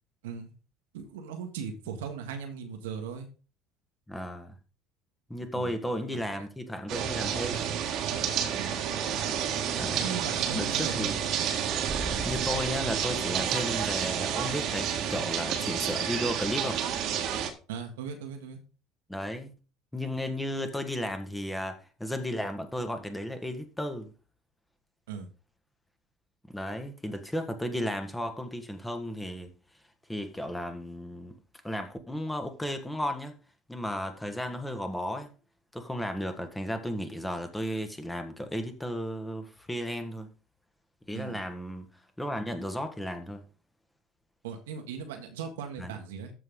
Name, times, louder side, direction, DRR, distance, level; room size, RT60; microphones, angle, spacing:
voice 1, 0.9-3.3 5.5-5.7 8.6-8.8 10.0-11.1 17.7-18.6 25.1-25.3 27.1-27.2 41.1-41.4 44.4-46.3, right 7 dB, 75° right, 1.7 m, -38 dB
voice 2, 4.1-4.5 5.3-7.7 9.7-10.0 10.5-11.2 12.2-16.8 19.1-19.5 19.9-24.1 26.5-29.5 30.1-31.4 31.6-33.4 33.7-35.3 35.7-40.3 41.1-41.9 42.2-43.4 45.8-45.9, equal, 10° left, 1.8 m, -34 dB
sound 1, 6.9-17.5, right 8 dB, 55° right, 1.8 m, -30 dB
sound 2, 8.5-14.5 14.9-15.0, right 2 dB, 25° right, 1.7 m, -44 dB
14.0 x 4.7 x 3.8 m
figure-of-eight pair, 65°, 0 cm